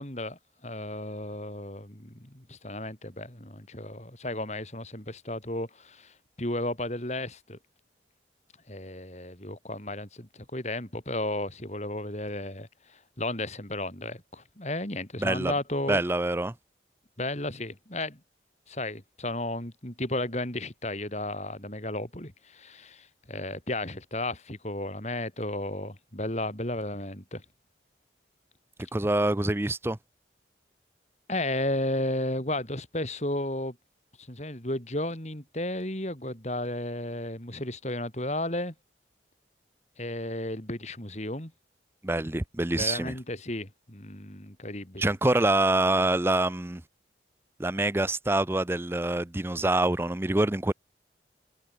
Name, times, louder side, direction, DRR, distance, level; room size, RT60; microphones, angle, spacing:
voice 1, 0.0-7.6 8.7-16.0 17.2-18.2 18.7-27.4 31.3-33.8 34.2-38.7 40.0-41.5 42.8-45.2, left 1 dB, 35° left, 4.0 m, -33 dB
voice 2, 15.2-15.5 15.9-16.5 28.9-30.0 42.0-43.1 45.0-46.8 47.6-50.7, right 2 dB, 15° right, 0.6 m, -25 dB
head